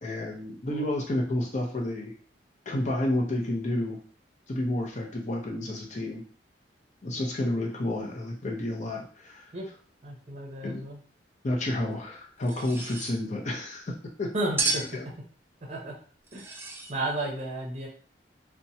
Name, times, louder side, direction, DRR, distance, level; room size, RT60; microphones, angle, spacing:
voice 1, 0.0-2.1 2.7-4.0 4.5-6.2 7.0-9.5 10.6-10.8 11.4-14.3 14.9-15.1, left 1 dB, 40° left, 0 dB, 0.7 m, -30 dB
voice 2, 10.0-11.0 14.3-14.8 15.7-15.9 16.3-16.4 16.9-17.9, right 1 dB, 40° right, 0 dB, 0.7 m, -33 dB
sound 1, 12.4-13.2 14.6-15.0 16.3-17.0, right 3 dB, 15° right, 0.3 m, -31 dB
2.9 x 2.2 x 2.7 m, 0.43 s
head